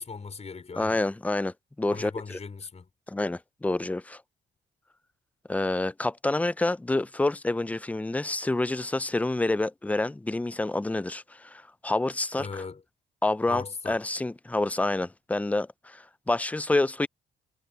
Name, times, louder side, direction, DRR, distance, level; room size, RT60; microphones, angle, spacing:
voice 1, 0.0-1.0 1.9-2.9 12.3-12.8 13.5-14.0, left 4 dB, 35° left, 4.8 m, -38 dB
voice 2, 0.8-2.4 3.1-4.2 5.5-12.5 13.2-17.1, left 2 dB, 5° left, 0.5 m, -28 dB
cardioid pair, 90°, 20 cm